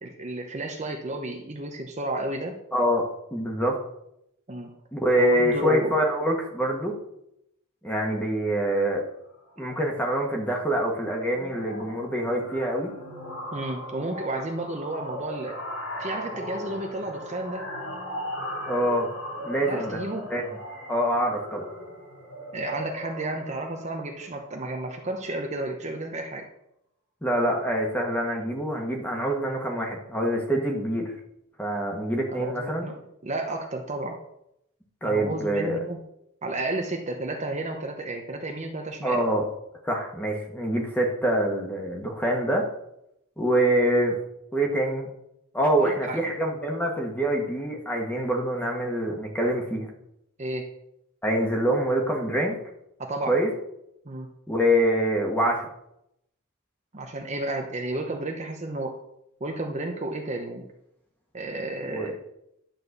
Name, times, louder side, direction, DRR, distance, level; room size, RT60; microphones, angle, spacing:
voice 1, 0.0-2.6 4.5-4.7 5.2-6.0 13.5-15.6 16.0-17.6 19.7-20.2 22.5-26.4 32.3-32.9 33.2-34.2 35.0-36.0 36.4-39.2 45.8-46.2 50.4-50.6 53.0-53.4 54.0-54.3 56.9-59.0 59.4-60.7 61.3-62.2, right 2 dB, 30° right, 2 dB, 0.9 m, -32 dB
voice 2, 2.7-3.8 4.9-6.9 7.8-9.1 9.6-12.9 18.7-19.1 19.4-20.0 20.3-20.5 20.9-21.7 27.2-31.1 31.6-32.9 35.0-35.8 39.0-39.5 39.8-42.7 43.4-44.2 44.5-45.1 45.5-49.9 51.2-52.6 53.3-53.5 54.5-55.7 61.9-62.1, right 1 dB, 10° left, 0 dB, 1.6 m, -25 dB
sound 1, 9.3-9.6 9.9-10.2 10.5-25.4, equal, 55° left, 3.0 m, -38 dB
11.0 x 4.5 x 6.7 m, 0.79 s
head